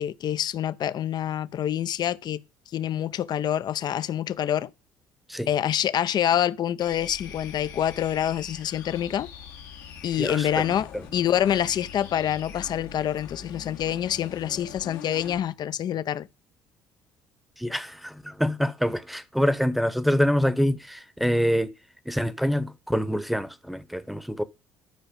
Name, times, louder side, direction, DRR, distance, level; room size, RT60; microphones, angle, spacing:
voice 1, 0.0-2.4 2.7-4.7 5.5-9.3 10.0-16.3, left 10 dB, 50° left, 0.6 m, -26 dB
sound 1, 6.8-15.4, left 7 dB, 85° left, 2.2 m, -43 dB
voice 2, 10.2-10.6 17.6-21.7 22.1-24.4, equal, ahead, 0.9 m, -25 dB
11.5 x 4.8 x 5.3 m
supercardioid pair, 75°, 9 cm